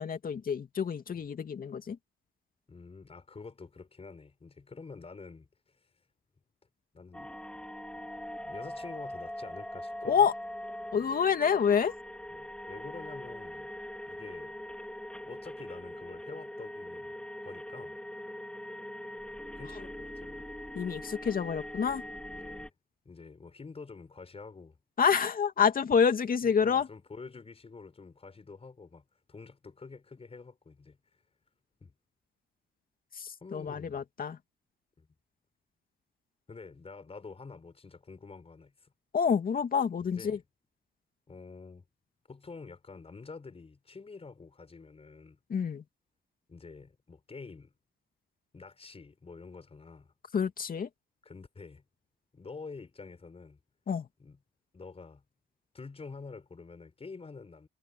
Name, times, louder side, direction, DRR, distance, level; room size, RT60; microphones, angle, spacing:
voice 1, 0.0-2.0 10.0-10.3 10.9-11.9 20.7-22.0 25.0-26.9 33.2-34.4 39.1-40.4 45.5-45.8 50.3-50.9 53.9-54.1, left 6 dB, 45° left, 2.5 m, -27 dB
voice 2, 2.7-5.5 6.9-7.3 8.4-10.3 10.9-11.1 12.3-13.7 14.1-14.6 15.2-17.1 17.4-18.0 19.6-20.5 22.3-22.7 23.0-24.8 26.4-31.0 31.8-31.9 33.4-34.0 35.0-35.1 36.5-38.9 40.0-40.4 41.3-41.8 42.3-45.4 46.5-47.7 48.5-50.1 51.2-51.8 52.3-53.6 54.2-54.4 54.7-55.2 55.7-57.7, left 4 dB, 30° left, 6.4 m, -48 dB
sound 1, 7.1-22.7, left 1 dB, 5° left, 3.5 m, -42 dB
cardioid pair, 90°, 20 cm